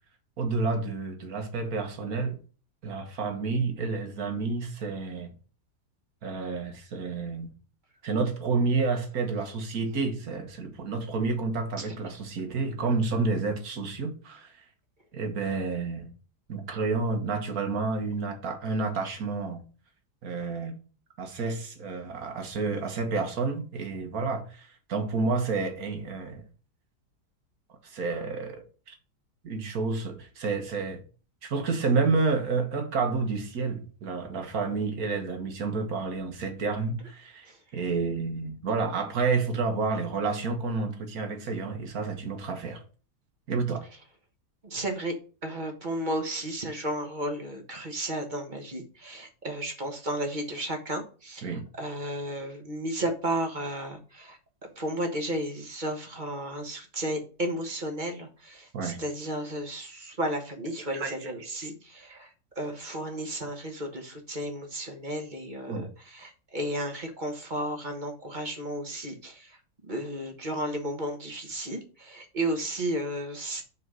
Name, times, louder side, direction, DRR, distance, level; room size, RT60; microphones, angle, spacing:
voice 1, 0.4-2.4 2.8-5.3 6.2-7.5 8.0-14.5 15.1-16.1 16.5-19.6 20.2-20.7 21.2-26.4 27.8-28.9 29.4-31.0 31.4-42.8 43.5-43.9 51.4-51.6 58.7-59.0 60.9-61.7 62.1-62.2 65.7-65.8, right 4 dB, 60° right, 1.7 m, -30 dB
voice 2, 44.6-45.1 45.4-54.4 54.8-62.3 62.5-69.6 69.8-73.6, right 1 dB, 30° right, 1.2 m, -33 dB
5.5 x 4.6 x 6.2 m
omnidirectional pair, 1.8 m